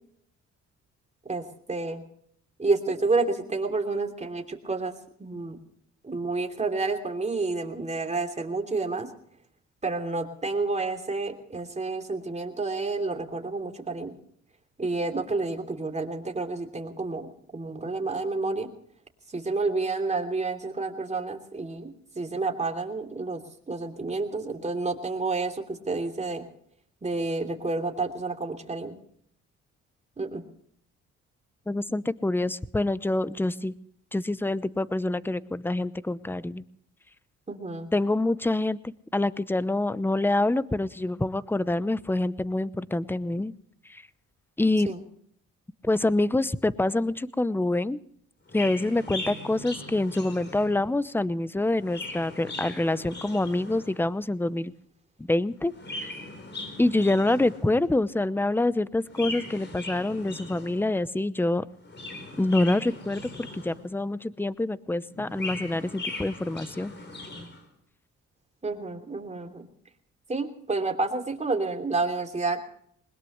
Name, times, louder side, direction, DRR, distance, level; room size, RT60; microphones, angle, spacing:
voice 1, 1.2-2.0 2.6-5.6 6.0-9.1 9.8-14.2 14.8-18.7 19.3-26.5 27.0-29.0 30.2-30.4 37.5-37.9 44.8-45.0 68.6-69.7 70.3-72.6, right 3 dB, 20° right, 4 dB, 3.0 m, -30 dB
voice 2, 31.7-33.7 34.1-36.6 37.9-38.8 39.1-43.5 43.9-44.0 44.6-44.9 45.8-48.0 48.5-54.7 55.3-56.1 56.8-61.7 62.4-66.9, left 2 dB, 5° left, 17 dB, 0.7 m, -26 dB
Chirp tweet, 48.5-50.9 51.6-54.1 55.6-57.8 59.0-60.9 61.7-64.0 65.1-67.6, left 2 dB, 35° left, 4.2 m, -39 dB
21.5 x 20.5 x 3.2 m, 0.66 s
cardioid pair, 90°, 30 cm